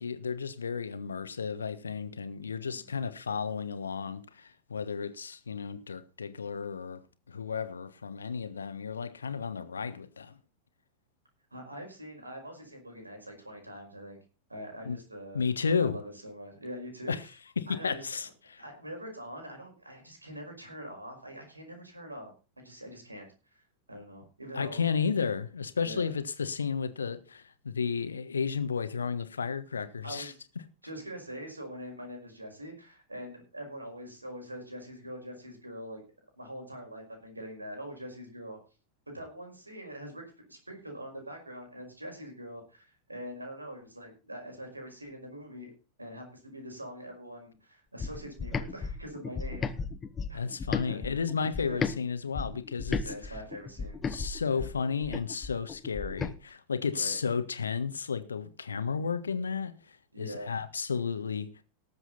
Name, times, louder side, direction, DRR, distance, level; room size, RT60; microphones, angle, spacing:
voice 1, 0.0-7.0 7.3-10.4 14.8-15.0 15.3-16.0 17.1-17.2 17.6-18.6 24.5-30.3 50.3-53.4 54.1-61.5, left 6 dB, 70° left, 1.3 m, -33 dB
voice 2, 11.5-14.2 14.5-15.5 15.8-17.3 17.7-18.1 18.6-22.3 22.6-24.8 25.8-26.1 30.0-30.4 30.8-36.0 36.4-38.6 39.1-45.7 46.0-49.7 50.3-50.4 50.8-51.2 51.6-51.9 53.0-54.0 54.5-54.7 56.9-57.2 58.9-59.1 60.1-60.6, equal, 80° right, 5.2 m, -43 dB
sound 1, 48.0-52.0 52.3-56.3, left 5 dB, 20° left, 1.0 m, -35 dB
19.0 x 7.8 x 4.1 m
figure-of-eight pair, 90°, 0 cm